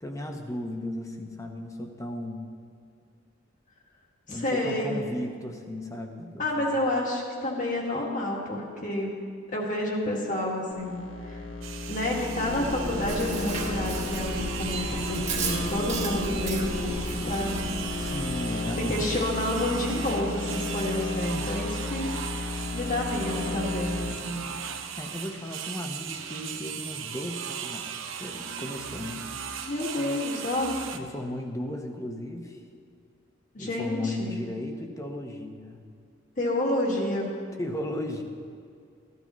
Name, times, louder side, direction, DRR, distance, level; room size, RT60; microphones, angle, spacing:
voice 1, 0.0-2.5 4.3-6.8 18.0-19.0 25.0-29.2 30.9-32.6 33.6-35.8 37.6-38.2, left 1 dB, 15° left, 3 dB, 0.9 m, -35 dB
voice 2, 4.3-5.0 6.4-9.2 9.5-11.4 11.9-17.6 18.8-24.4 29.6-30.8 33.5-34.3 36.4-37.4, left 1 dB, 40° left, -2 dB, 1.9 m, -29 dB
sound 1, 10.7-24.1, left 3 dB, 85° left, 1.4 m, -34 dB
sound 2, 11.6-31.0, right 8 dB, 80° right, 0.7 m, -37 dB
Chewing mastication, 12.5-18.2, right 2 dB, 35° right, 1.4 m, -34 dB
14.5 x 12.0 x 3.1 m, 2.3 s
head